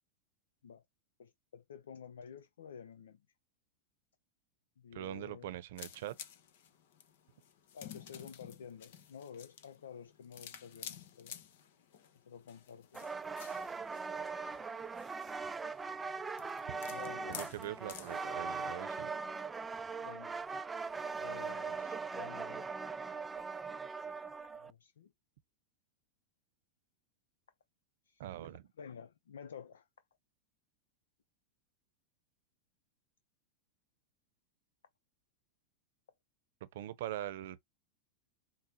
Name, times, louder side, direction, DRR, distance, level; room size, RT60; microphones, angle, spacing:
voice 1, 1.2-3.2 4.8-5.6 7.7-11.3 12.3-13.0 16.9-17.4 20.0-20.4 21.2-22.7 24.5-25.1 28.1-28.2 28.8-29.9, left 7 dB, 85° left, 0.5 m, -51 dB
voice 2, 4.9-6.2 17.3-19.1 28.2-28.6 36.7-37.6, right 13 dB, 70° right, 0.7 m, -42 dB
sound 1, 5.8-18.3, left 9 dB, 70° left, 0.9 m, -52 dB
sound 2, 12.9-24.7, right 4 dB, 15° right, 0.3 m, -40 dB
5.0 x 2.0 x 2.9 m
hypercardioid pair, 110°, 0 cm